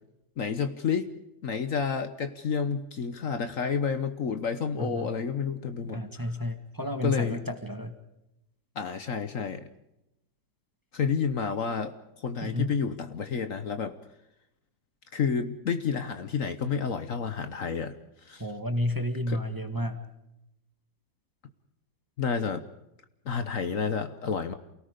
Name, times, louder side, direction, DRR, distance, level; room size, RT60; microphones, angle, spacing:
voice 1, 0.4-1.1 1.4-6.3 7.0-7.4 8.8-9.7 10.9-14.0 15.1-17.9 18.2-18.4 19.3-19.4 22.2-22.6 23.2-24.5, left 6 dB, 55° left, 9 dB, 1.3 m, -30 dB
voice 2, 4.8-5.1 5.8-7.9 12.4-12.7 18.4-20.0, left 1 dB, 15° right, 7 dB, 1.6 m, -31 dB
28.5 x 18.5 x 5.1 m, 0.87 s
omnidirectional pair, 1.8 m